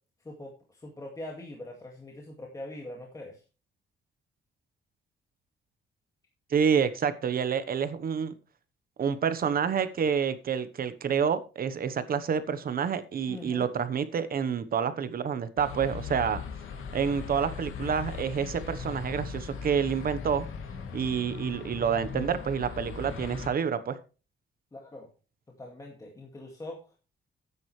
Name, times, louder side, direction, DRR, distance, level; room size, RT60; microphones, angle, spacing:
voice 1, 0.2-3.4 13.3-13.7 24.7-25.1 25.6-26.8, left 1 dB, 15° left, 0 dB, 2.2 m, -42 dB
voice 2, 6.5-8.3 9.0-16.4 16.9-20.4 20.9-24.0, right 7 dB, 45° right, 12 dB, 1.1 m, -28 dB
sound 1, 15.6-23.5, left 6 dB, 85° left, 2.7 m, -38 dB
13.5 x 9.9 x 3.3 m, 0.33 s
cardioid pair, 165°, 21 cm